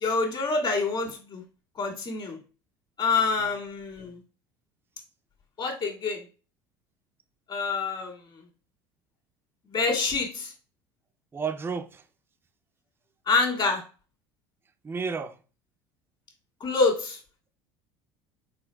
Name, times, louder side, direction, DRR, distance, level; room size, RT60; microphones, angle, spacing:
voice 1, 0.0-1.4 1.8-2.4 3.0-4.2 5.6-6.2 7.5-8.2 9.7-10.5 13.3-13.8 16.6-17.2, left 4 dB, 45° left, 2.0 m, -26 dB
voice 2, 3.2-3.5 11.3-12.0 14.8-15.4, right 5 dB, 20° right, 0.5 m, -32 dB
4.4 x 3.9 x 2.2 m
hypercardioid pair, 80°, 11 cm